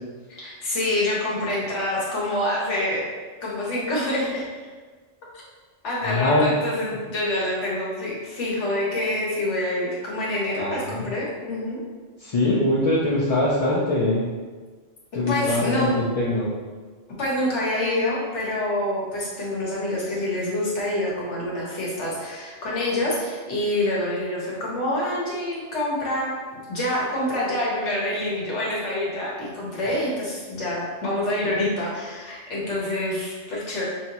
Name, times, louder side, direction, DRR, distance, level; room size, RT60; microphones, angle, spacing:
voice 1, 0.3-3.0 3.4-4.4 5.3-5.4 5.8-11.8 15.3-15.9 17.2-26.4 26.7-33.8, left 1 dB, 90° left, -5 dB, 1.5 m, -26 dB
voice 2, 6.0-6.5 10.6-10.9 12.2-14.2 15.1-16.5, left 1 dB, 40° left, -6 dB, 0.5 m, -22 dB
5.6 x 2.8 x 2.9 m, 1.4 s
omnidirectional pair, 1.2 m